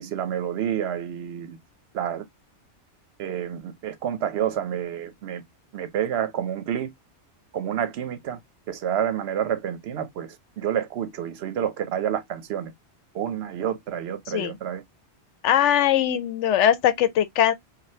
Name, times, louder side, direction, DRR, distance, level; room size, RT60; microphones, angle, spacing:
voice 1, 0.0-1.6 1.9-2.3 3.2-5.4 5.7-6.9 7.5-8.4 8.7-12.7 13.1-14.8, right 9 dB, 70° right, 0.8 m, -29 dB
voice 2, 15.4-17.5, left 10 dB, 85° left, 0.9 m, -21 dB
3.1 x 2.3 x 2.7 m
omnidirectional pair, 1.2 m